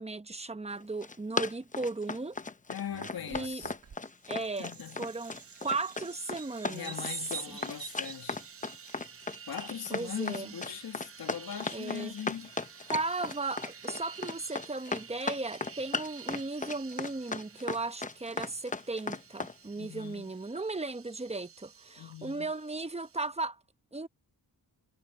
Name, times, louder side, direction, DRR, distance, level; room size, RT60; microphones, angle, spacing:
voice 1, 0.0-2.4 3.3-3.6 4.3-4.7 5.0-5.4 5.6-6.9 7.5-7.6 9.9-10.5 11.7-12.1 12.9-23.6 23.9-24.1, right 3 dB, 15° right, 1.0 m, -36 dB
Run, 0.8-19.5, left 3 dB, 20° left, 0.8 m, -36 dB
voice 2, 2.7-3.7 4.6-5.1 6.7-8.4 9.5-12.5 19.7-20.3 22.0-22.5, left 9 dB, 75° left, 2.1 m, -40 dB
Bird vocalization bird call bird song, 2.9-9.2, right 7 dB, 60° right, 2.3 m, -48 dB
sound 1, 5.1-23.3, right 7 dB, 35° right, 0.7 m, -51 dB
wide cardioid pair, 110°, 38 cm